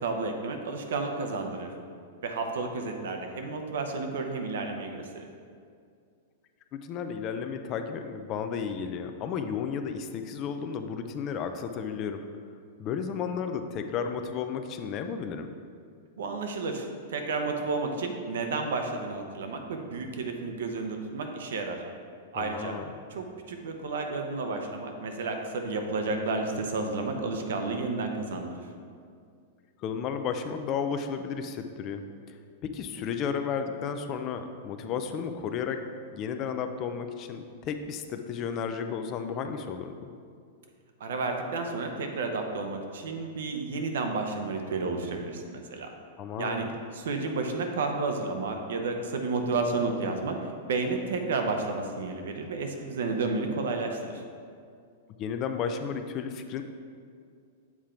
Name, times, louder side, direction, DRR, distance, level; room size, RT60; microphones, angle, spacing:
voice 1, 0.0-1.7 2.2-5.2 16.2-21.8 22.3-22.8 23.1-28.5 41.0-45.9 46.4-46.7 46.9-54.2, right 3 dB, 80° right, 4 dB, 0.8 m, -31 dB
voice 2, 6.7-12.2 12.8-15.5 22.4-22.8 29.8-32.4 32.6-35.8 36.1-40.1 46.2-46.6 55.2-56.6, left 6 dB, 35° left, 7 dB, 0.4 m, -33 dB
7.2 x 3.7 x 4.3 m, 2.2 s
hypercardioid pair, 140°, 0 cm